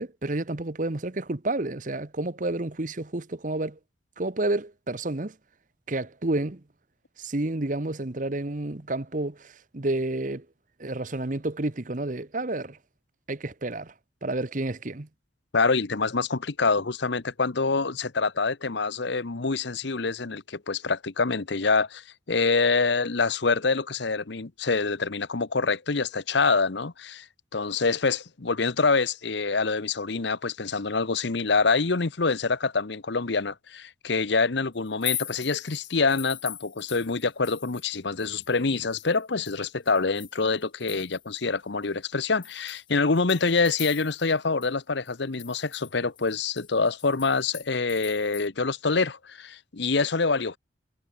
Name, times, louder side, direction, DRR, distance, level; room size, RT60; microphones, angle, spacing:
voice 1, 0.0-3.8 4.2-5.3 5.9-6.6 7.2-10.5 10.8-12.8 13.3-13.9 14.2-15.1, right 2 dB, 40° right, 1.0 m, -30 dB
voice 2, 15.5-27.2 27.5-50.6, left 4 dB, 65° left, 0.9 m, -26 dB
sound 1, 34.9-37.9 38.2-41.4 41.8-41.9 42.4-44.4 44.6-44.7 45.1-48.5, left 10 dB, 25° left, 0.7 m, -40 dB
head